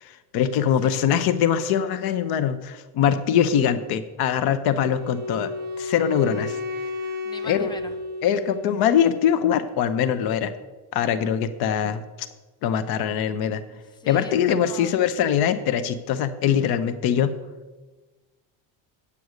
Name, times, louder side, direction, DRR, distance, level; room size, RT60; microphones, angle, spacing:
voice 1, 0.0-5.5 5.8-6.6 7.4-7.7 8.2-10.5 10.9-12.0 12.6-13.6 14.1-17.3, left 8 dB, 55° left, 12 dB, 0.7 m, -22 dB
Wind instrument woodwind instrument, 4.8-8.9, left 3 dB, 25° right, 0.6 m, -32 dB
voice 2, 7.3-7.9 13.7-15.0, left 4 dB, 10° left, 10 dB, 0.3 m, -41 dB
9.4 x 8.5 x 6.4 m, 1.2 s
cardioid pair, 180°, 45 cm